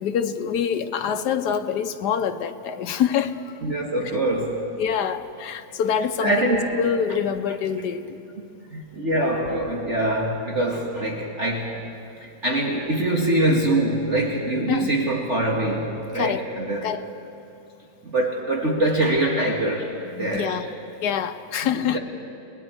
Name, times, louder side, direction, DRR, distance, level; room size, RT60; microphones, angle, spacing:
voice 1, 0.0-3.5 4.8-8.1 14.7-14.9 16.1-16.4 16.8-17.0 20.2-20.7 21.0-22.0, left 8 dB, 65° left, 8 dB, 1.3 m, -25 dB
voice 2, 3.6-4.7 6.2-6.8 8.7-11.8 12.4-16.9 18.0-19.9 20.2-20.6 21.7-22.0, right 1 dB, 40° right, -1 dB, 1.8 m, -24 dB
30.0 x 19.5 x 4.5 m, 2.8 s
omnidirectional pair, 2.0 m